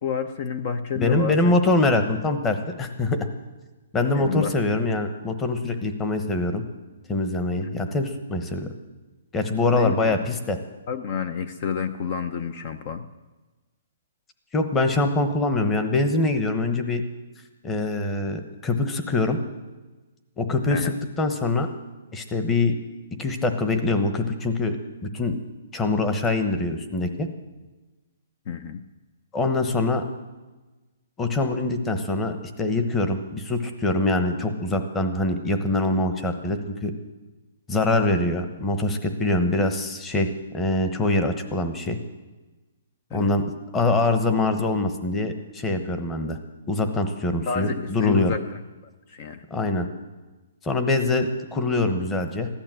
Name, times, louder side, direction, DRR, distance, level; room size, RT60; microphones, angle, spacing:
voice 1, 0.0-1.4 4.1-4.5 7.6-7.7 9.7-10.2 10.9-13.1 20.7-21.0 28.5-28.8 43.1-43.3 47.5-48.6 49.1-49.4, left 6 dB, 40° left, 10 dB, 0.7 m, -29 dB
voice 2, 1.0-3.2 3.9-6.6 7.1-8.7 9.3-10.6 14.5-17.0 17.6-19.4 20.4-21.7 22.1-22.8 23.2-24.8 25.0-25.4 25.7-27.3 29.3-30.0 31.2-36.9 37.7-42.0 43.1-43.4 43.7-46.4 46.7-48.3 49.5-49.9 50.6-52.5, left 2 dB, 10° left, 7 dB, 1.1 m, -24 dB
15.5 x 12.0 x 7.7 m, 1.2 s
hypercardioid pair, 165°, 0 cm